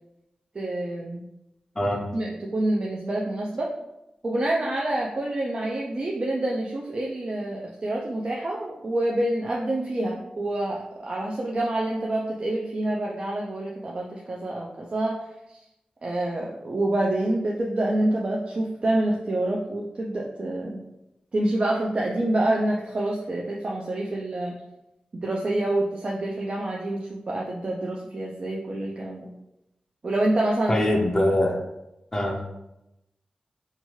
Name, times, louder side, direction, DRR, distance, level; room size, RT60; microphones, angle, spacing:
voice 1, 0.5-1.2 2.1-3.7 4.2-15.6 16.0-20.8 21.3-24.6 25.1-29.3 30.0-30.7, right 1 dB, 45° right, -2 dB, 0.3 m, -27 dB
voice 2, 1.8-2.1 30.7-31.6 32.1-32.4, left 1 dB, 20° left, 0 dB, 0.4 m, -23 dB
2.8 x 2.3 x 2.9 m, 0.92 s
wide cardioid pair, 85°, 3 cm